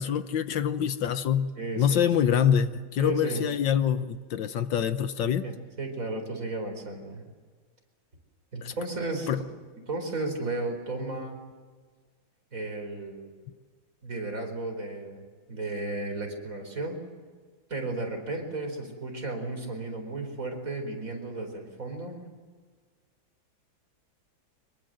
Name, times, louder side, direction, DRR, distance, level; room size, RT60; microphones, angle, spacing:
voice 1, 0.0-5.4 8.6-8.7 9.3-9.4, left 8 dB, 70° left, 11 dB, 1.6 m, -25 dB
voice 2, 1.6-2.1 3.0-3.4 5.4-7.2 8.5-9.3 9.9-11.4 12.5-13.3 14.0-17.0 17.7-22.2, right 2 dB, 40° right, 4 dB, 4.8 m, -34 dB
24.5 x 22.5 x 7.7 m, 1.5 s
omnidirectional pair, 2.2 m